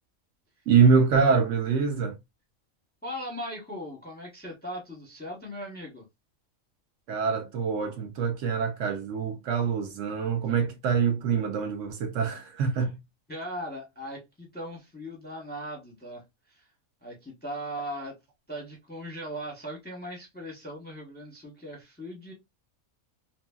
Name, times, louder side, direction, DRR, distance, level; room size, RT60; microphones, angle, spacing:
voice 1, 0.7-2.2 7.1-13.0, right 5 dB, 70° right, 0.9 m, -25 dB
voice 2, 3.0-6.0 12.8-12.9 13.3-16.7 17.0-18.2 18.5-22.3, equal, 10° left, 0.6 m, -39 dB
2.8 x 2.6 x 2.2 m
omnidirectional pair, 1.4 m